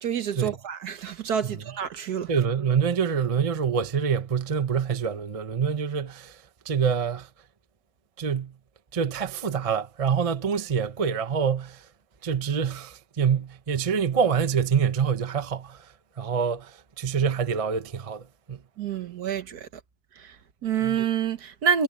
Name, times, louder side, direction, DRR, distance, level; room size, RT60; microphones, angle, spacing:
voice 1, 0.0-2.3 18.8-19.7 20.2-21.8, right 8 dB, 55° right, 1.4 m, -28 dB
voice 2, 2.3-6.4 6.6-7.3 8.2-8.5 8.9-11.9 12.2-15.9 16.2-18.6 20.8-21.0, right 6 dB, 30° right, 0.6 m, -26 dB
omnidirectional pair, 2.1 m